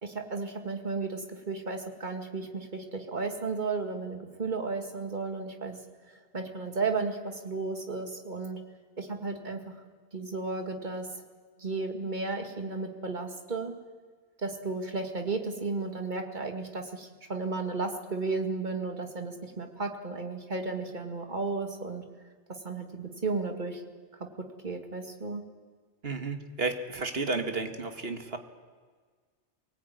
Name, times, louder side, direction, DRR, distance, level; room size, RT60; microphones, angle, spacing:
voice 1, 0.0-5.8 6.1-8.6 9.0-9.8 10.1-11.1 11.6-13.8 14.4-22.0 22.5-23.8 24.2-25.4, right 3 dB, 40° right, 5 dB, 2.2 m, -34 dB
voice 2, 26.0-28.4, right 3 dB, 55° right, 7 dB, 1.9 m, -32 dB
23.5 x 18.5 x 9.4 m, 1.5 s
omnidirectional pair, 1.2 m